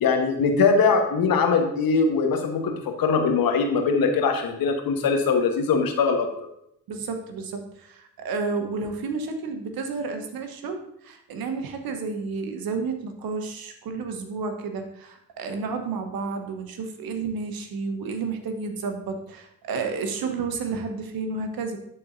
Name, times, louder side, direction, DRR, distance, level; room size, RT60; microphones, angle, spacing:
voice 1, 0.0-6.3, left 5 dB, 60° left, 5 dB, 1.2 m, -21 dB
voice 2, 6.9-21.8, right 4 dB, 60° right, 6 dB, 1.2 m, -31 dB
11.5 x 4.2 x 2.6 m, 0.74 s
hypercardioid pair, 45°, 40 cm